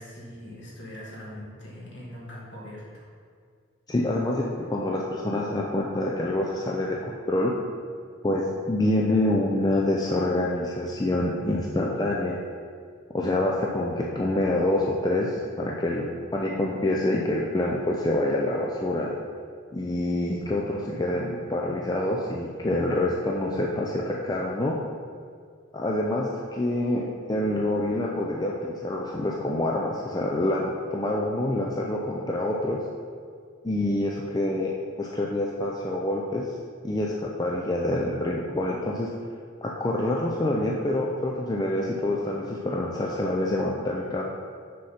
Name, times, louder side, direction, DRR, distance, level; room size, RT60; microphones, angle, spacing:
voice 1, 0.0-3.1, left 1 dB, 60° left, -5 dB, 1.8 m, -41 dB
voice 2, 3.9-7.5 8.2-12.4 13.1-16.0 16.3-19.1 19.7-24.7 25.7-32.8 33.6-36.5 36.8-39.1 39.6-44.2, left 1 dB, 20° left, -2 dB, 0.4 m, -26 dB
6.2 x 4.2 x 5.7 m, 2.1 s
head